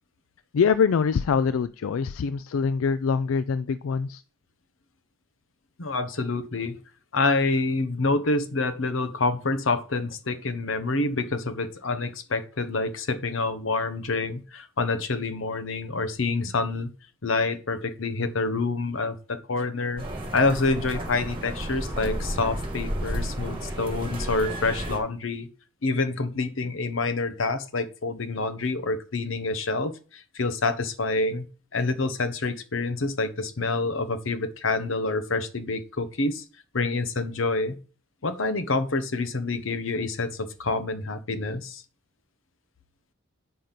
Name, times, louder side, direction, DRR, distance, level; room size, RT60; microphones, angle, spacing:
voice 1, 0.5-4.2, left 6 dB, 85° left, 14 dB, 0.4 m, -24 dB
voice 2, 5.8-6.8 7.1-16.9 17.2-20.0 20.3-25.5 25.8-31.5 31.7-36.4 36.7-37.7 38.2-41.8, left 3 dB, 70° left, 10 dB, 0.9 m, -27 dB
sound 1, 20.0-25.0, right 1 dB, 25° right, 2.1 m, -32 dB
7.7 x 5.2 x 5.8 m, 0.38 s
head